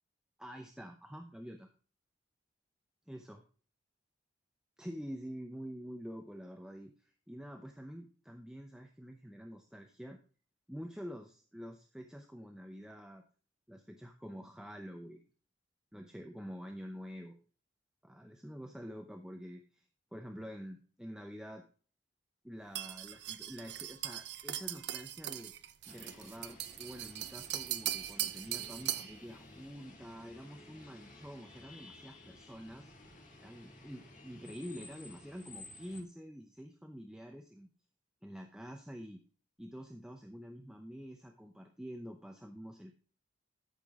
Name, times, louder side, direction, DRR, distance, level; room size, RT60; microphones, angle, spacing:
voice 1, 0.4-1.7 3.1-3.4 4.8-10.2 10.7-13.2 13.7-15.2 15.9-17.4 18.0-19.9 20.1-21.6 22.4-25.5 25.9-32.9 33.4-37.7 38.2-39.2 39.6-43.0, equal, 5° right, 4 dB, 0.7 m, -47 dB
sound 1, 22.8-29.2, right 12 dB, 60° right, 0.6 m, -40 dB
sound 2, 25.9-36.0, left 2 dB, 40° left, 2.2 m, -55 dB
13.0 x 5.9 x 3.6 m, 0.39 s
head